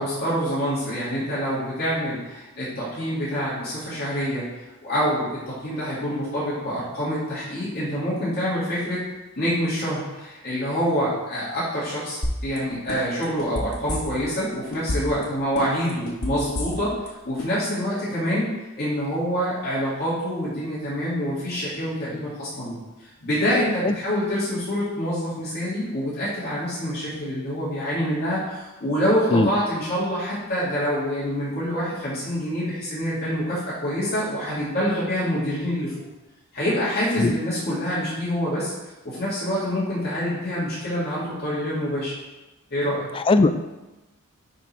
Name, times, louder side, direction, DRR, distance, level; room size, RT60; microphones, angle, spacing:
voice 1, 0.0-4.4 4.8-9.0 9.4-22.8 23.2-35.9 36.5-38.7 39.0-42.1 42.7-43.0, equal, 45° left, -9 dB, 2.9 m, -26 dB
sound 1, 12.2-12.6 12.9-14.4 14.7-15.2 15.6-17.1 17.4-17.5, left 1 dB, 70° left, 1.6 m, -28 dB
voice 2, 43.2-43.7, left 3 dB, 25° left, 10 dB, 0.4 m, -19 dB
10.0 x 4.1 x 4.7 m, 1.1 s
head